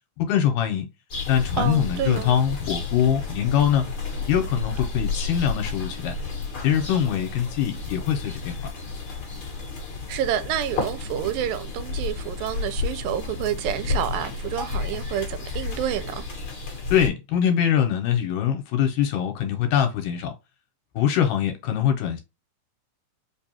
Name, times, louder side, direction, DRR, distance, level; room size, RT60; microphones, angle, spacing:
voice 1, 0.2-0.9 1.3-3.8 4.3-6.1 6.6-8.6 16.9-20.3 21.0-22.2, left 9 dB, 75° left, 2.3 m, -23 dB
sound 1, 1.1-17.1, left 4 dB, 45° left, 1.8 m, -32 dB
voice 2, 1.6-2.4 10.1-16.2, right 11 dB, 90° right, 2.3 m, -29 dB
5.1 x 2.3 x 2.8 m
omnidirectional pair, 3.9 m